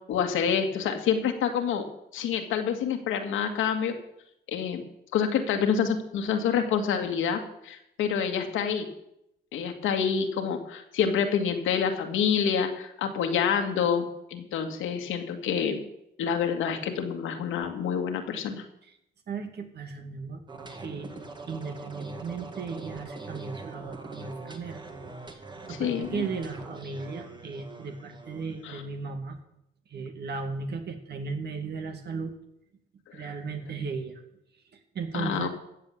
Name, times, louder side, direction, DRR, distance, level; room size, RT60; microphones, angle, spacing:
voice 1, 0.1-1.9 2.1-3.9 4.5-4.8 5.1-8.9 9.5-15.8 16.2-18.6 25.7-26.2 28.6-28.8 33.1-33.3 35.1-35.5, left 7 dB, 85° left, 5 dB, 1.9 m, -27 dB
voice 2, 19.3-20.4 20.8-21.1 21.5-24.8 25.7-29.4 29.9-32.3 33.1-34.2 34.9-35.5, right 5 dB, 55° right, 6 dB, 2.0 m, -35 dB
sound 1, 20.5-28.8, right 3 dB, 20° right, 1.9 m, -42 dB
15.0 x 7.6 x 7.1 m, 0.80 s
cardioid pair, 90°, 20 cm